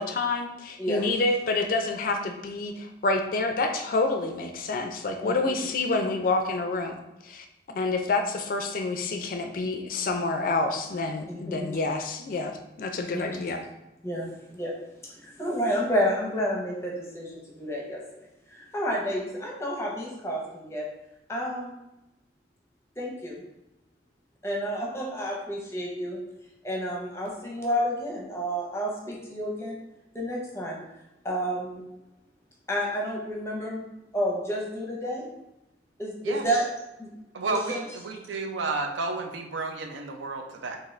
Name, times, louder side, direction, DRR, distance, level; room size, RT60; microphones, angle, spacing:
voice 1, 0.0-13.6, left 3 dB, 50° left, 5 dB, 0.3 m, -28 dB
voice 2, 11.3-11.7 13.1-13.2 14.0-14.7 15.0-18.0 18.5-20.8 21.3-21.7 23.0-23.4 24.4-26.2 26.6-29.8 30.1-30.8 31.2-31.8 32.7-33.8 34.1-35.3 36.0-36.7 37.0-37.1 37.4-37.8, equal, 15° left, -2 dB, 0.7 m, -30 dB
voice 3, 37.3-40.8, right 3 dB, 85° right, 4 dB, 0.5 m, -32 dB
3.7 x 2.6 x 3.1 m, 0.92 s
head